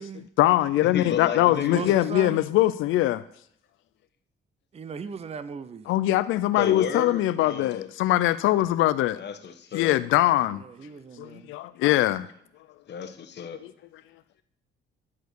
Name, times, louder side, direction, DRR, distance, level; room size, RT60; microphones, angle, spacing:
voice 1, 0.4-3.2 5.9-9.2 9.7-10.6 11.2-12.3 13.6-13.7, left 15 dB, 85° left, 0.4 m, -22 dB
voice 2, 0.9-1.8 6.6-7.9 9.1-10.0 12.9-13.6, left 8 dB, 60° left, 1.2 m, -32 dB
voice 3, 1.5-2.4 4.7-5.9 10.5-11.5, right 5 dB, 30° right, 0.6 m, -38 dB
10.5 x 4.5 x 8.0 m
cardioid pair, 90°, 20 cm